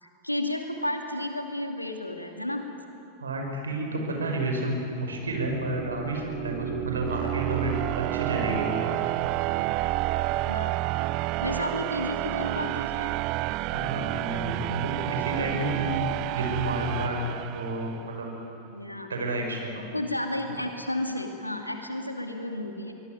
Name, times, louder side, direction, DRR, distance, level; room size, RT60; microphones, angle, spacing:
voice 1, 0.0-2.6 10.5-10.7 11.4-13.1 18.6-19.1 19.9-22.9, left 1 dB, 85° left, 4 dB, 2.5 m, -32 dB
voice 2, 3.2-8.8 13.7-16.0 16.3-17.2 17.5-18.3 19.1-19.8, right 2 dB, 70° right, 2 dB, 5.5 m, -30 dB
sound 1, 5.2-18.1, right 19 dB, 40° right, 0.5 m, -30 dB
24.0 x 20.0 x 9.4 m, 3.0 s
figure-of-eight pair, 90°, 0 cm